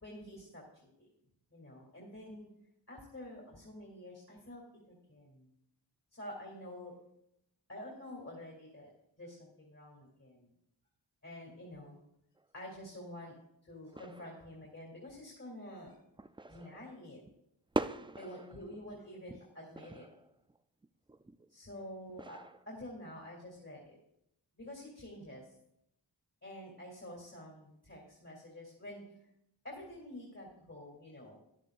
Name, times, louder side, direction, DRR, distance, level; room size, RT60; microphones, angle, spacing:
voice 1, 0.0-0.6 1.0-1.1 1.5-2.5 2.9-5.5 6.1-7.0 7.7-8.9 9.2-10.5 11.2-12.0 12.5-13.3 13.6-16.0 16.5-17.2 18.2-20.1 21.5-22.4 22.7-24.0 24.5-25.5 26.4-29.2 29.6-31.4, left 1 dB, 35° left, -2 dB, 2.9 m, -48 dB
sound 1, 12.4-12.5 13.9-14.7 15.2-15.3 15.9-17.4 17.7-18.9 19.2-21.5 22.1-22.7, right 2 dB, 10° right, 0.3 m, -42 dB
13.0 x 11.0 x 2.5 m, 0.79 s
wide cardioid pair, 60°, 44 cm